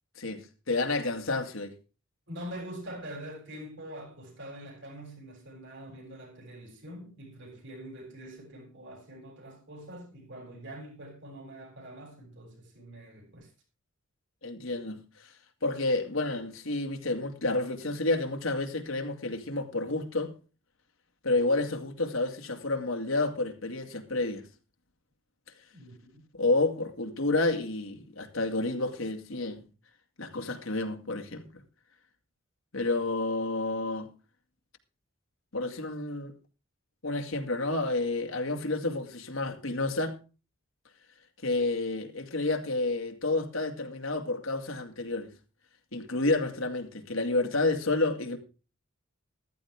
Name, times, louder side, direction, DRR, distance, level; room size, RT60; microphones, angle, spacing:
voice 1, 0.2-1.7 14.4-15.3 15.6-20.3 21.2-24.5 26.3-29.6 30.2-31.6 32.7-34.1 35.5-36.3 37.0-40.2 41.4-45.3 45.9-48.4, left 2 dB, 70° left, 2.3 m, -30 dB
voice 2, 2.3-13.5 25.7-26.2, right 1 dB, 60° right, 7.7 m, -44 dB
14.5 x 14.0 x 3.6 m
head